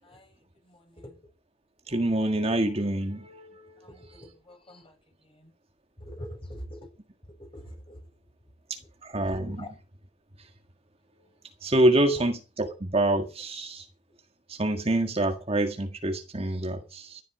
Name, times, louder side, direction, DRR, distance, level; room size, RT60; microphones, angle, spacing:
voice 1, 0.0-1.2 3.8-5.5 6.0-6.9 7.4-8.1 9.5-9.7 12.1-12.3, equal, 30° left, 6.6 m, -45 dB
voice 2, 1.9-3.9 8.7-9.6 10.4-10.5 11.6-13.9 14.5-17.2, right 1 dB, 35° right, 1.8 m, -26 dB
16.0 x 11.5 x 5.0 m
head